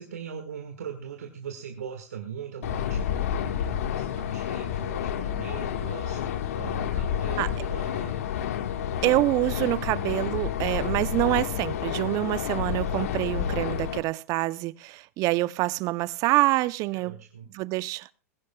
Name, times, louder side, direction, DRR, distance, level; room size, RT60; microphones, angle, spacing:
voice 1, 0.0-8.1 16.9-17.5, right 7 dB, 80° right, 1.7 m, -40 dB
sound 1, 2.6-14.0, left 9 dB, 70° left, 1.5 m, -30 dB
voice 2, 9.0-17.2 17.5-18.1, right 19 dB, 45° right, 0.6 m, -26 dB
20.0 x 16.0 x 2.3 m
hypercardioid pair, 95°, 8 cm